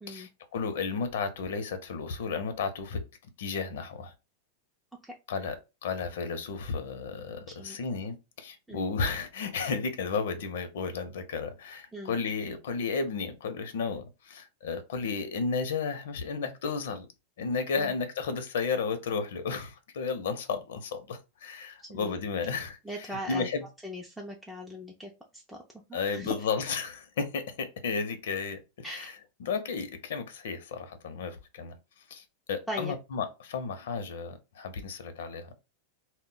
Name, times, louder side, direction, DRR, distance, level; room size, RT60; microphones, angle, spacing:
voice 1, 0.1-3.0 3.4-4.1 5.3-17.1 17.4-22.8 23.3-23.6 25.9-28.6 28.9-29.1 29.4-31.7 32.1-35.5, left 5 dB, 80° left, 0.6 m, -33 dB
voice 2, 21.8-22.2 22.8-23.5 23.8-25.6 25.9-26.3 28.8-29.1 32.7-32.9, left 1 dB, ahead, 0.4 m, -39 dB
2.1 x 2.1 x 3.7 m
supercardioid pair, 140°, 0 cm